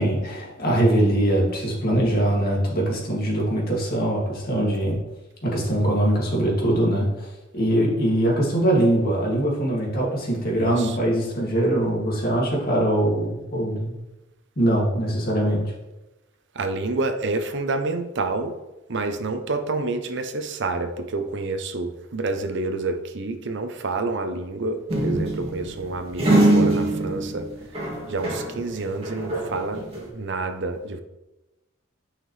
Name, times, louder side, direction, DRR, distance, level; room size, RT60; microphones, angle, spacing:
voice 1, 0.0-5.0 5.4-14.0 14.6-15.7, right 1 dB, 50° left, -3 dB, 2.3 m, -22 dB
voice 2, 10.6-11.0 16.6-18.5 18.9-27.5 28.1-29.9 30.1-31.0, right 3 dB, 60° right, 8 dB, 0.7 m, -28 dB
sound 1, 24.9-28.6 28.9-30.1, right 1 dB, 30° right, 2.3 m, -23 dB
9.7 x 5.7 x 3.2 m, 1.0 s
head